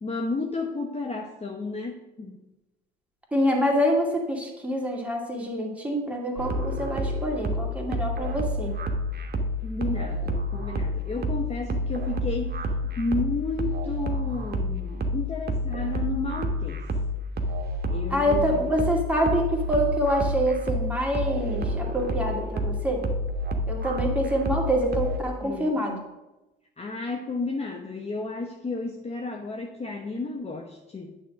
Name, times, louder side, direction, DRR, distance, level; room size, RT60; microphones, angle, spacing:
voice 1, 0.0-2.5 9.6-12.7 13.0-16.8 17.9-18.7 25.4-25.8 26.8-31.2, left 3 dB, 20° left, 2 dB, 0.9 m, -32 dB
voice 2, 3.3-8.8 18.1-23.0 23.7-26.0, equal, 5° right, -1 dB, 2.4 m, -26 dB
sound 1, 6.4-25.2, equal, 35° right, 1.2 m, -29 dB
9.3 x 3.6 x 6.1 m, 1.0 s
hypercardioid pair, 60°, 29 cm